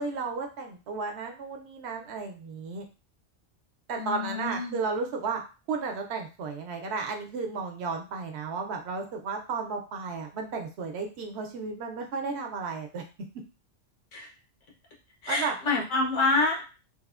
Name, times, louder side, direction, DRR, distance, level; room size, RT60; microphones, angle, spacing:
voice 1, 0.0-2.8 3.9-5.4 5.7-13.0 15.3-15.5, right 4 dB, 70° right, 3 dB, 0.8 m, -33 dB
voice 2, 4.0-4.8 14.1-14.3 15.2-16.6, left 3 dB, 90° left, 0 dB, 1.2 m, -27 dB
3.1 x 2.0 x 2.3 m, 0.32 s
omnidirectional pair, 1.2 m